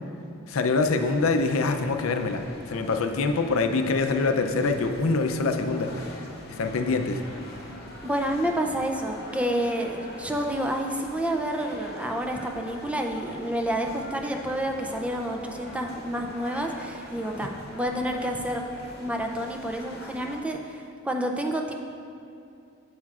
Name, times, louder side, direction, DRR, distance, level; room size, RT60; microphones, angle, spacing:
voice 1, 0.5-6.2 6.6-7.2, left 3 dB, 80° left, 6 dB, 0.5 m, -25 dB
sound 1, 0.8-20.4, left 1 dB, 50° left, 0.9 m, -44 dB
voice 2, 8.0-18.7 19.0-21.7, right 1 dB, 5° right, 2 dB, 0.4 m, -29 dB
8.7 x 7.2 x 2.4 m, 2.6 s
head